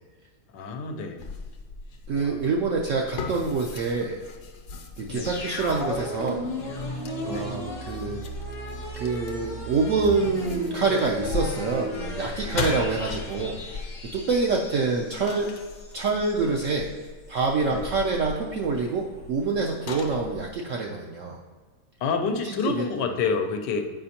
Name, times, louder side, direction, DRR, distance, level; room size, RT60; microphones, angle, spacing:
voice 1, 0.5-1.3 2.1-2.5 5.1-5.3 7.2-7.5 17.7-17.9 22.0-23.8, left 5 dB, 90° left, 5 dB, 1.3 m, -29 dB
sound 1, 1.2-20.5, left 4 dB, 70° left, 1.2 m, -39 dB
voice 2, 2.1-4.2 5.0-6.4 6.9-8.3 9.0-13.8 14.1-15.5 15.9-16.9 17.3-21.4 22.4-23.1, right 4 dB, 75° right, 0 dB, 0.7 m, -26 dB
sound 2, 5.1-15.9 16.2-16.3, left 1 dB, 40° left, 0.6 m, -35 dB
7.8 x 5.0 x 2.8 m, 1.4 s
omnidirectional pair, 1.9 m